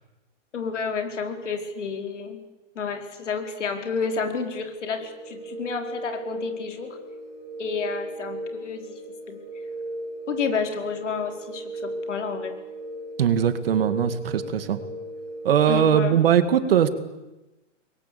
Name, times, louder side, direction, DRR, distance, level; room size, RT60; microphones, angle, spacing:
voice 1, 0.5-2.4 2.7-7.0 7.6-9.0 9.3-9.4 10.3-12.5 15.7-16.2, left 5 dB, 70° left, 5 dB, 4.8 m, -30 dB
sound 1, 4.9-15.8, right 1 dB, 35° left, 8.0 m, -36 dB
voice 2, 13.2-14.8 15.4-16.9, right 9 dB, 50° right, 11 dB, 2.3 m, -20 dB
27.5 x 22.0 x 8.6 m, 1.0 s
hypercardioid pair, 175°, 37 cm